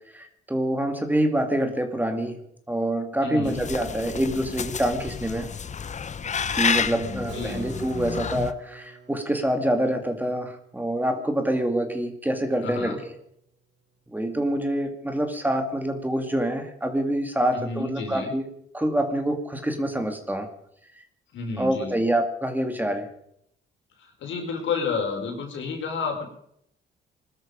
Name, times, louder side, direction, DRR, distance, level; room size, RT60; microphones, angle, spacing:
voice 1, 0.1-2.4 2.7-5.5 6.5-13.0 14.1-18.5 18.7-20.5 21.6-23.1, right 1 dB, 10° right, 6 dB, 2.3 m, -26 dB
voice 2, 3.2-3.6 6.8-7.7 12.6-13.0 17.5-18.3 21.3-22.0 24.0-26.3, left 4 dB, 75° left, 2 dB, 5.0 m, -31 dB
sound 1, 3.4-8.5, left 6 dB, 35° left, 0.8 m, -30 dB
Keyboard (musical), 7.3-12.9, right 5 dB, 75° right, 6.1 m, -47 dB
21.0 x 13.0 x 5.2 m, 0.72 s
cardioid pair, 90°, 20 cm